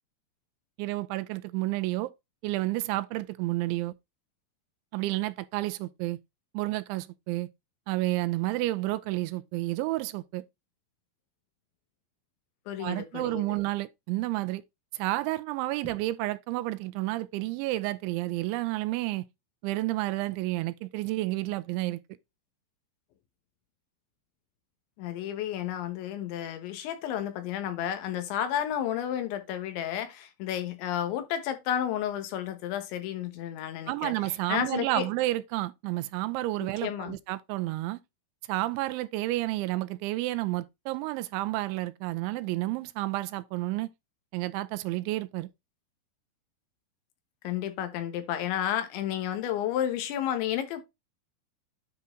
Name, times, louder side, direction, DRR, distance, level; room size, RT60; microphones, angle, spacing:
voice 1, 0.8-2.1 2.4-3.9 4.9-6.2 6.5-7.5 7.9-10.4 12.8-14.6 14.9-19.3 19.6-22.0 33.9-38.0 38.5-43.9 44.3-45.5, right 18 dB, 85° right, 3.0 m, -30 dB
voice 2, 12.7-13.4 25.0-34.1 34.5-35.1 36.8-37.2 47.4-50.9, left 10 dB, 80° left, 3.5 m, -31 dB
9.6 x 4.0 x 3.7 m
omnidirectional pair, 5.4 m